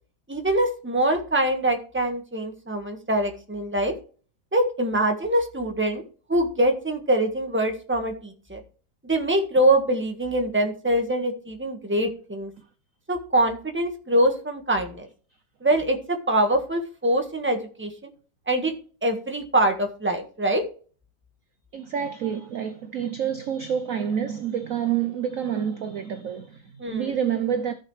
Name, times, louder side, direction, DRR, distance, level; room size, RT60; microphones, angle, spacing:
voice 1, 0.3-3.9 4.5-6.0 6.3-8.6 9.0-12.5 13.1-15.1 15.6-17.9 18.5-18.7 19.0-20.6 26.8-27.1, right 1 dB, 5° right, 1.4 m, -24 dB
voice 2, 21.7-27.7, right 8 dB, 60° right, 0.9 m, -28 dB
14.5 x 6.4 x 3.3 m
omnidirectional pair, 2.1 m